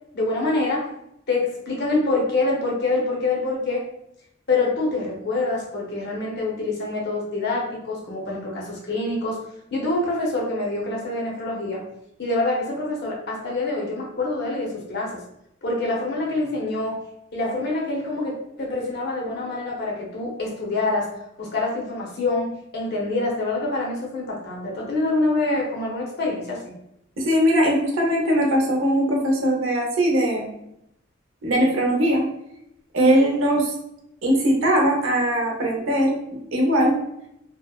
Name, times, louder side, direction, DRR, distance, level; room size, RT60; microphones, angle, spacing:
voice 1, 0.1-0.9 1.3-3.9 4.5-9.4 9.7-11.8 12.2-15.2 15.6-17.0 17.3-21.1 21.4-22.5 22.7-26.7, left 2 dB, 55° left, -2 dB, 0.7 m, -25 dB
voice 2, 27.2-30.5 31.4-32.2 32.9-33.7 34.2-36.2 36.5-37.0, equal, 85° right, -1 dB, 0.7 m, -20 dB
2.7 x 2.0 x 2.3 m, 0.79 s
head